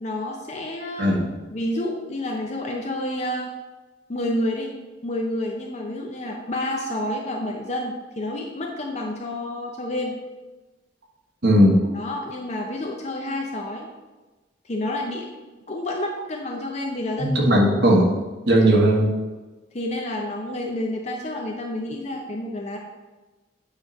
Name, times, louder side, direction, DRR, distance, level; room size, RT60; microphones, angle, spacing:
voice 1, 0.0-1.2 1.5-3.5 4.1-4.7 5.0-10.2 11.9-13.9 14.6-15.3 15.7-17.6 19.7-22.8, left 1 dB, 40° left, 0 dB, 0.6 m, -29 dB
voice 2, 1.0-1.3 11.4-11.8 17.2-18.1 18.5-19.1, equal, 65° right, -1 dB, 1.4 m, -17 dB
8.3 x 3.2 x 5.4 m, 1.2 s
head